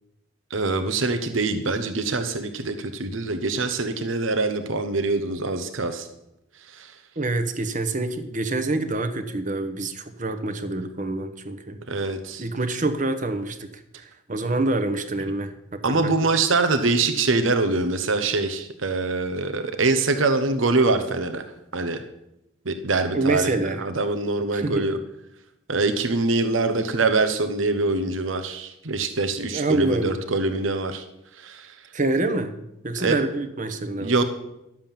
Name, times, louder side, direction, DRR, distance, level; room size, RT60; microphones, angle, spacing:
voice 1, 0.5-6.1 6.7-6.9 11.9-12.4 15.8-21.4 21.7-22.0 22.6-25.0 25.7-31.0 31.4-31.7 33.0-33.2 34.0-34.2, right 3 dB, 80° right, 9 dB, 1.0 m, -24 dB
voice 2, 7.2-11.8 12.4-13.7 14.0-16.1 23.1-23.8 24.5-24.9 29.5-30.2 31.9-32.5 32.8-34.1, right 2 dB, 40° right, 8 dB, 1.1 m, -26 dB
12.0 x 7.4 x 7.4 m, 0.86 s
head